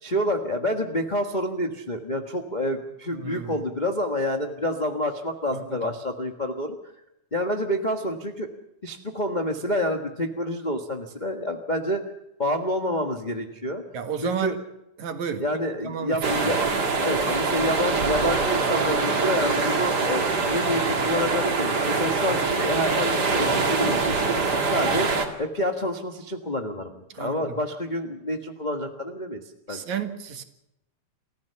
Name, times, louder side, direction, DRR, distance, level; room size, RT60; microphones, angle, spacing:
voice 1, 0.0-6.9 7.3-8.5 8.8-12.0 12.4-13.8 14.2-14.6 15.4-16.6 17.0-24.2 24.6-25.1 25.4-29.4 29.7-29.8, left 1 dB, 45° left, 3 dB, 0.5 m, -28 dB
voice 2, 3.1-3.5 5.5-5.8 13.9-14.5 15.0-16.2 16.4-16.6 27.1-27.6 29.7-30.4, right 7 dB, 65° right, 6 dB, 3.0 m, -32 dB
sound 1, 16.2-25.3, right 4 dB, 35° right, 2.4 m, -24 dB
28.5 x 15.0 x 6.9 m, 0.87 s
omnidirectional pair, 3.6 m